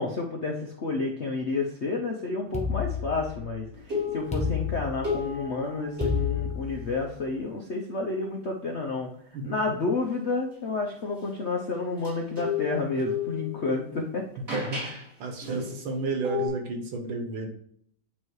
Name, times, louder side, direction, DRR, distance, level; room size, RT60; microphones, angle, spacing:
voice 1, 0.0-9.1 9.4-14.3, left 3 dB, 65° left, 1 dB, 0.7 m, -30 dB
sound 1, 2.5-3.6 4.3-5.4 6.0-7.1, left 5 dB, 5° left, 1.0 m, -30 dB
sound 2, 3.8-4.7 5.0-6.8 12.0-13.8 14.5-15.0 15.4-15.8 16.2-16.5, left 5 dB, 40° right, 3.1 m, -32 dB
voice 2, 14.5-17.5, right 3 dB, 85° right, 3 dB, 2.0 m, -32 dB
9.2 x 3.2 x 4.7 m, 0.66 s
omnidirectional pair, 2.1 m